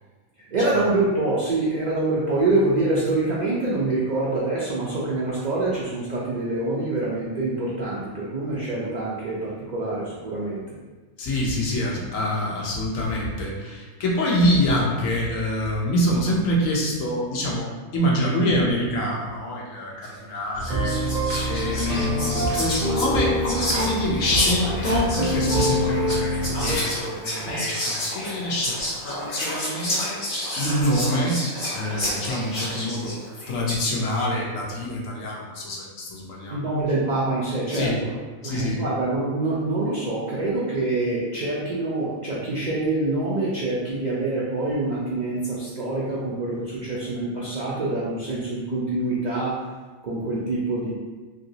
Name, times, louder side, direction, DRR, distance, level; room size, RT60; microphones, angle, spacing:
voice 1, 0.4-10.8 36.5-49.6 50.0-50.9, right 2 dB, 75° right, -6 dB, 0.4 m, -25 dB
voice 2, 11.2-20.9 21.5-30.2 30.6-31.4 31.7-33.2 33.5-36.7 37.7-38.0 38.4-38.8, equal, 80° left, -3 dB, 1.1 m, -26 dB
Whispering, 20.0-20.2 20.6-33.9, left 1 dB, 45° left, 1.0 m, -30 dB
sound 1, 20.5-26.8, equal, 50° right, 0.7 m, -25 dB
3.1 x 2.8 x 2.7 m, 1.3 s
omnidirectional pair, 1.4 m